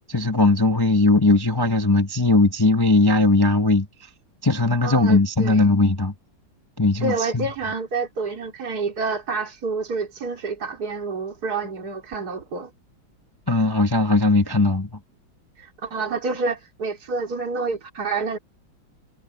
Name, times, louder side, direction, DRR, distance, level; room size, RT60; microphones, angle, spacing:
voice 1, 0.1-4.1 4.4-6.1 6.8-7.5 13.5-15.0, left 2 dB, 15° left, 0.8 m, -19 dB
voice 2, 4.8-5.6 7.0-12.7 15.6-18.4, right 4 dB, 50° right, 3.9 m, -28 dB
omnidirectional pair, 2.1 m